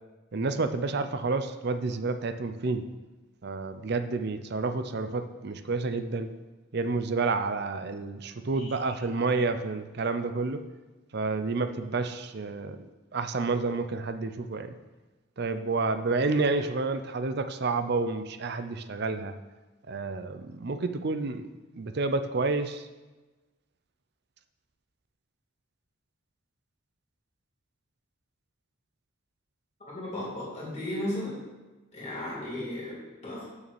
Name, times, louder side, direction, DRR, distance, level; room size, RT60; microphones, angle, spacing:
voice 1, 0.3-2.9 3.4-6.3 6.7-10.6 11.1-12.9 13.1-14.7 15.4-19.3 19.9-21.5 21.7-22.9, right 3 dB, 50° right, 9 dB, 0.5 m, -29 dB
voice 2, 8.5-8.8 29.9-31.4 31.9-33.4, left 1 dB, 30° left, -6 dB, 2.8 m, -35 dB
6.5 x 6.2 x 7.0 m, 1.2 s
head